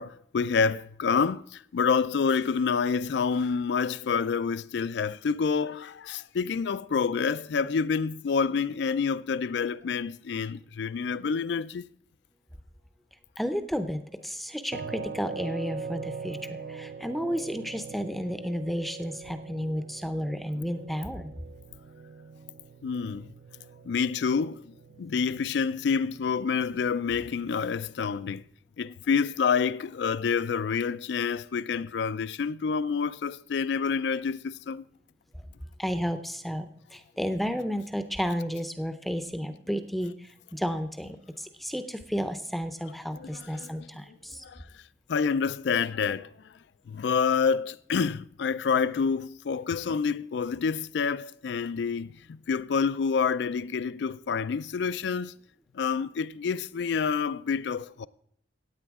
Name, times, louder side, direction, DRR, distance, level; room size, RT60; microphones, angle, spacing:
voice 1, 0.0-11.9 22.8-23.3 23.8-28.4 28.8-34.8 43.2-44.8 45.1-46.5 46.9-55.3 55.7-58.1, left 5 dB, 65° left, 0.3 m, -28 dB
voice 2, 13.4-21.3 35.3-35.4 35.8-44.4, equal, ahead, 0.5 m, -32 dB
sound 1, 14.7-27.7, right 5 dB, 50° right, 0.4 m, -43 dB
15.0 x 8.8 x 3.5 m
head